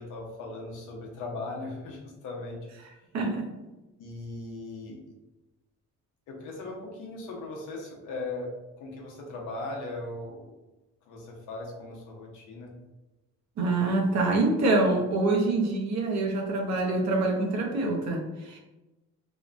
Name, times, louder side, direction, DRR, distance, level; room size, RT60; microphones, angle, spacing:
voice 1, 0.0-2.6 4.0-5.0 6.3-8.5 8.8-10.6 11.1-12.7, left 2 dB, 90° left, -1 dB, 0.7 m, -38 dB
voice 2, 3.1-3.5 13.6-18.6, right 2 dB, 65° right, 1 dB, 0.7 m, -25 dB
2.8 x 2.1 x 2.5 m, 1.0 s
cardioid pair, 90°, 30 cm